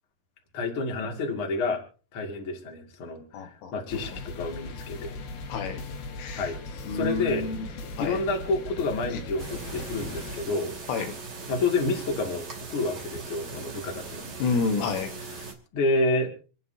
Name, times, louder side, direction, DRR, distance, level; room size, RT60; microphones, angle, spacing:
voice 1, 0.5-1.8 2.1-5.1 6.3-7.5 8.0-10.7 11.5-14.3 15.7-16.3, left 3 dB, 40° left, 2 dB, 2.2 m, -29 dB
voice 2, 3.3-3.7 5.5-5.8 6.2-6.6 6.9-7.7 8.0-8.2 9.1-9.2 10.9-11.2 14.4-15.1, left 4 dB, 90° left, 5 dB, 4.1 m, -29 dB
sound 1, 3.9-10.4, left 2 dB, 60° left, 3.4 m, -39 dB
sound 2, 9.4-15.5, right 4 dB, 30° right, 2.3 m, -40 dB
27.5 x 9.5 x 2.8 m, 0.38 s
omnidirectional pair, 5.4 m